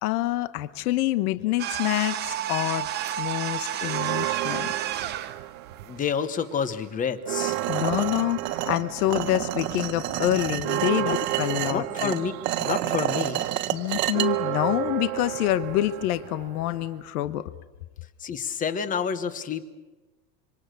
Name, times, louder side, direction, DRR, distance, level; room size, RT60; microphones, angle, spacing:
voice 1, 0.0-2.9 3.2-4.7 7.7-12.1 13.7-17.5, left 15 dB, 65° left, 13 dB, 1.3 m, -27 dB
sound 1, 1.6-5.4, right 11 dB, 20° right, 0.8 m, -31 dB
sound 2, 3.8-6.2 6.6-17.1, right 17 dB, 55° right, 1.2 m, -33 dB
voice 2, 5.9-7.6 11.0-11.2 11.6-12.3 12.6-13.4 18.2-19.6, left 7 dB, 15° left, 12 dB, 1.2 m, -29 dB
sound 3, 7.4-14.3, right 13 dB, 80° right, 1.8 m, -29 dB
27.0 x 25.0 x 6.8 m, 1.2 s
supercardioid pair, 165°, 48 cm